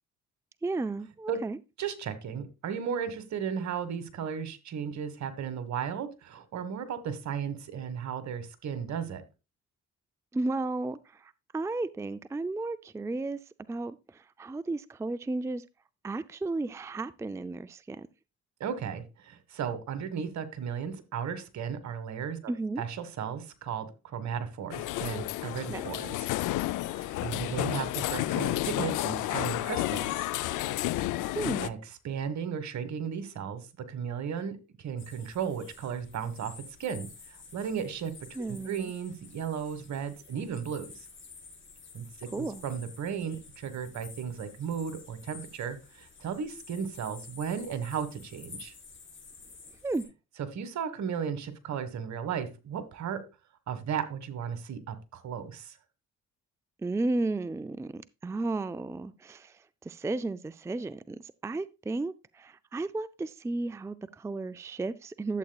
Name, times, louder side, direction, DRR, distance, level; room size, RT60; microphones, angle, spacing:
voice 1, 0.6-1.6 10.3-13.4 13.7-15.6 16.0-18.1 22.5-22.8 25.6-25.8 31.3-31.8 38.4-38.9 42.3-42.6 49.8-50.1 56.8-65.4, right 2 dB, 10° right, 0.4 m, -34 dB
voice 2, 1.8-9.2 18.6-22.5 22.8-26.3 26.9-30.3 31.6-31.8 32.0-36.5 36.8-38.1 38.5-41.1 41.9-48.7 50.5-53.2 53.7-55.8, right 7 dB, 65° right, 1.6 m, -35 dB
sound 1, 24.7-31.7, left 16 dB, 85° left, 0.5 m, -31 dB
sound 2, 35.0-50.0, left 5 dB, 40° left, 4.7 m, -51 dB
11.5 x 7.9 x 2.3 m
cardioid pair, 90°, 30 cm